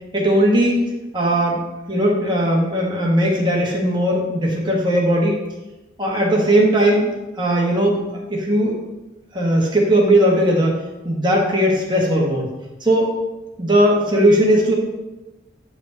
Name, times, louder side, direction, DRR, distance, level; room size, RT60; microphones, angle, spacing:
voice 1, 0.1-1.6 1.9-5.4 6.0-8.0 8.3-8.8 9.3-10.8 11.0-12.5 12.8-13.2 13.6-14.7, right 1 dB, 25° right, -2 dB, 1.5 m, -18 dB
8.7 x 4.9 x 4.0 m, 1.1 s
head